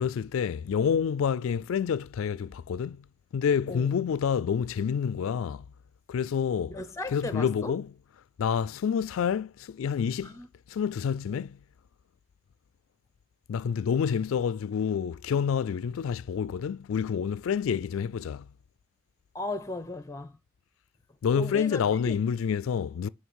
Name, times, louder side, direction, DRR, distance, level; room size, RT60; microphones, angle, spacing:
voice 1, 0.0-3.0 3.3-5.7 6.1-6.8 7.1-7.9 8.4-10.3 10.7-11.6 13.5-18.5 21.2-23.1, left 7 dB, 75° left, 0.3 m, -28 dB
voice 2, 6.7-7.7 10.2-10.5 11.3-11.4 19.3-20.4 21.3-22.2, left 2 dB, 15° left, 0.6 m, -36 dB
9.2 x 3.2 x 6.2 m
head